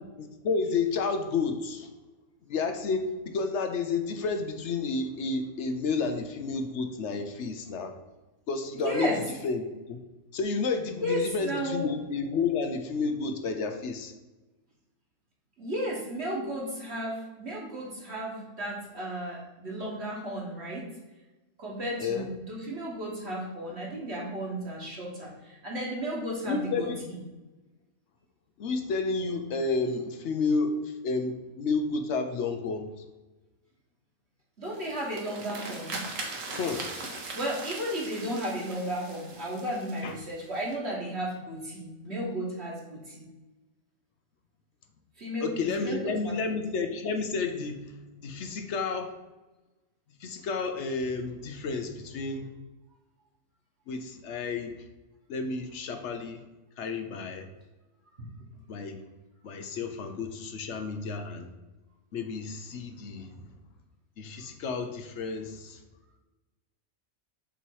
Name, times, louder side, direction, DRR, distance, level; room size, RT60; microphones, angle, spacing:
voice 1, 0.2-1.9 2.5-8.0 8.5-9.2 9.4-10.0 10.3-14.1 22.0-22.3 26.4-27.0 28.6-33.0 36.6-36.9 40.0-40.2 45.4-49.2 50.2-52.5 53.9-54.8 55.3-56.4 56.8-57.5 58.7-59.0 59.4-61.5 62.1-63.5 64.2-65.8, left 4 dB, 65° left, 6 dB, 0.9 m, -31 dB
voice 2, 8.7-9.2 11.0-11.9 15.6-20.9 21.6-26.9 34.6-36.0 37.3-43.3 45.2-46.3 58.2-58.3, right 1 dB, 50° right, -4 dB, 1.5 m, -34 dB
sound 1, 34.6-40.7, right 3 dB, 70° right, 1.4 m, -40 dB
6.9 x 3.0 x 4.6 m, 1.1 s
omnidirectional pair, 1.4 m